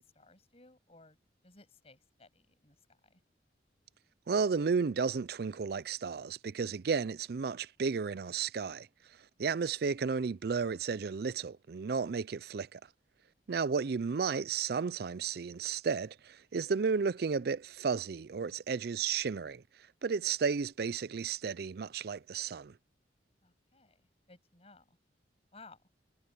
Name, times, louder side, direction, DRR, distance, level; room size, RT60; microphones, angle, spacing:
voice 1, 0.1-1.2 1.4-3.2 9.5-9.6 23.4-25.0 25.5-25.8, left 3 dB, 35° left, 7.1 m, -59 dB
voice 2, 4.3-8.9 9.4-12.8 13.5-19.6 20.0-22.7, right 5 dB, 60° right, 0.4 m, -33 dB
head